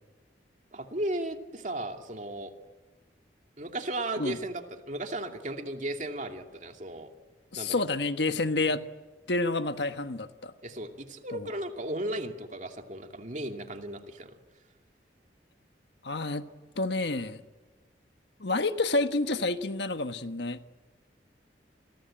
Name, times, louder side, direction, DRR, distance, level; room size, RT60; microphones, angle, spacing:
voice 1, 0.7-2.5 3.6-7.1 7.6-7.7 10.6-14.3, right 1 dB, 45° right, 2.6 m, -35 dB
voice 2, 7.5-8.8 9.3-10.5 11.3-11.5 16.0-16.5 16.8-17.4 18.4-20.6, left 2 dB, 75° left, 1.4 m, -29 dB
29.5 x 22.5 x 8.9 m
head